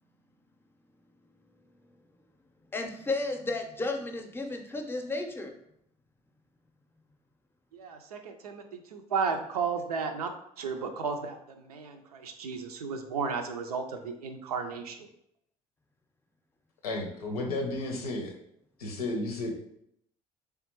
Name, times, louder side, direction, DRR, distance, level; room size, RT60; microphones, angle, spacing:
voice 1, 2.7-5.5, left 2 dB, 10° left, 4 dB, 0.6 m, -33 dB
voice 2, 7.7-15.0, right 5 dB, 75° right, 6 dB, 0.4 m, -34 dB
voice 3, 16.8-18.3 18.8-19.5, left 2 dB, 75° left, 2 dB, 0.7 m, -32 dB
3.5 x 3.4 x 3.0 m, 0.73 s
figure-of-eight pair, 55°, 19 cm